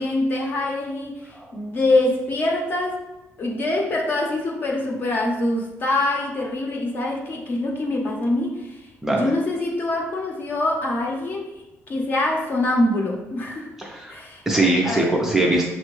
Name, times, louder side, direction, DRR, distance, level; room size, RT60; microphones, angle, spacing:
voice 1, 0.0-3.0 3.4-8.8 9.1-11.5 11.9-13.7 14.1-14.4 14.8-15.1, left 2 dB, 40° left, 0 dB, 0.7 m, -24 dB
voice 2, 13.8-14.1 14.5-15.7, right 2 dB, 5° right, -2 dB, 0.4 m, -21 dB
5.8 x 2.2 x 3.1 m, 0.99 s
cardioid pair, 165°, 5 cm